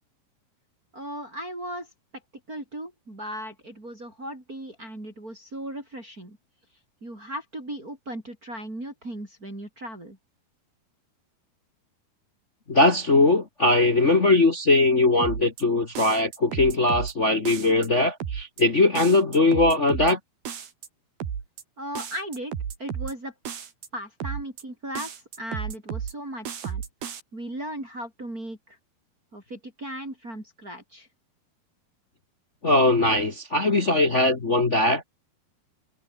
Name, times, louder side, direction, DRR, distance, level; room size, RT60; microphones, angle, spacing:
voice 1, 0.9-1.9 2.5-6.4 7.0-10.2 21.8-22.5 22.8-23.3 23.9-26.8 27.3-28.8 29.3-31.1, right 1 dB, 20° right, 7.5 m, -37 dB
voice 2, 12.7-20.2 32.6-35.0, left 2 dB, 60° left, 0.7 m, -20 dB
sound 1, 15.2-15.6 16.0-17.1 17.5-17.9 18.2-18.6 19.0-20.1 20.4-20.9 21.2-21.6 22.0-23.1 23.5-23.9 24.2-24.6 24.9-26.1 26.4-27.2, right 8 dB, 80° right, 5.0 m, -33 dB
omnidirectional pair, 4.4 m